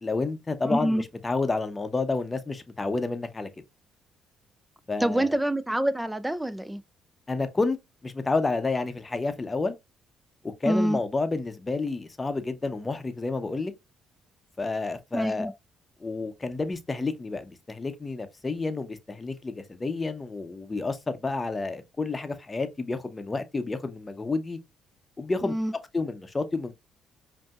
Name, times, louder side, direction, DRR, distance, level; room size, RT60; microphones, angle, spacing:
voice 1, 0.0-3.5 4.9-5.4 7.3-7.8 8.0-9.7 10.6-13.7 14.6-15.5 16.0-24.6 25.2-25.5 25.9-26.7, left 3 dB, 25° left, 0.7 m, -30 dB
voice 2, 0.6-1.0 5.0-6.8 10.7-11.0 15.1-15.5 25.4-25.7, right 1 dB, 10° right, 0.4 m, -26 dB
5.1 x 2.7 x 2.4 m
supercardioid pair, 75°, 0 cm